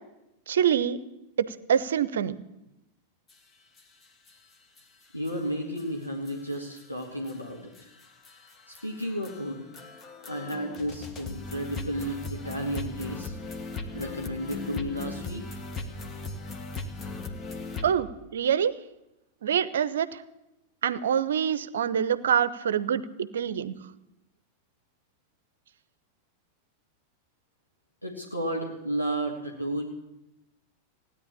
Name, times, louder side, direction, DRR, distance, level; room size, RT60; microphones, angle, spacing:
voice 1, 0.5-1.0 1.4-2.4 17.8-18.1 18.3-18.7 19.4-20.1 20.8-23.7, right 8 dB, 65° right, 17 dB, 0.7 m, -25 dB
sound 1, 3.3-3.4 3.8-3.9 4.3-4.4 4.8-4.9 5.3-5.4 5.8-5.9 6.3-17.9, left 3 dB, 25° left, 1.5 m, -38 dB
voice 2, 5.1-7.7 8.7-9.7 10.3-13.4 13.9-15.6 28.0-29.8, equal, 90° left, -1 dB, 1.8 m, -33 dB
16.5 x 9.8 x 8.5 m, 0.92 s
figure-of-eight pair, 90°, 0 cm